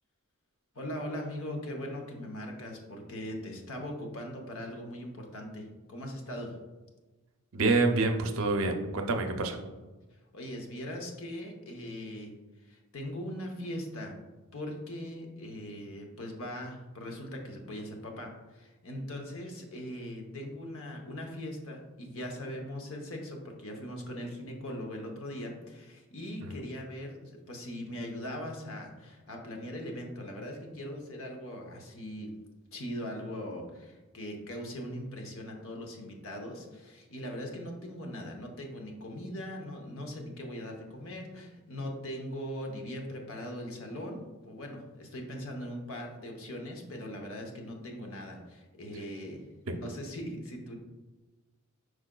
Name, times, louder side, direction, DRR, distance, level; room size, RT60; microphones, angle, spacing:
voice 1, 0.7-6.6 10.3-12.3 12.6-14.2 14.5-32.3 32.7-44.2 44.5-50.7, equal, 65° left, 2 dB, 0.8 m, -40 dB
voice 2, 7.5-9.6 26.4-26.5 49.7-49.8, right 3 dB, 60° right, 5 dB, 0.5 m, -27 dB
4.8 x 4.8 x 2.2 m, 1.2 s
head